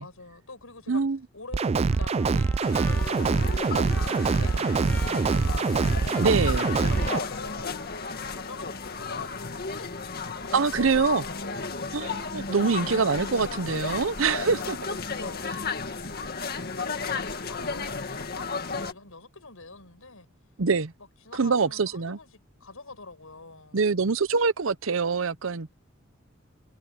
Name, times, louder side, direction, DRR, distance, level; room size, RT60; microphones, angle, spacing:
voice 1, 0.0-1.0 1.3-3.6 3.9-5.8 6.9-11.7 14.4-16.1 16.5-20.3 21.2-22.3 22.6-23.8, left 3 dB, 80° left, 6.1 m, -45 dB
voice 2, 0.9-1.2 6.2-6.7 10.5-11.2 11.9-14.8 20.6-20.9 21.3-22.2 23.7-25.7, right 4 dB, 70° right, 0.8 m, -24 dB
sound 1, 1.5-7.2, right 4 dB, 30° right, 0.3 m, -24 dB
Trumpet, 1.9-8.5, left 1 dB, 10° left, 1.8 m, -46 dB
sound 2, 2.6-18.9, left 4 dB, 50° left, 2.0 m, -34 dB
head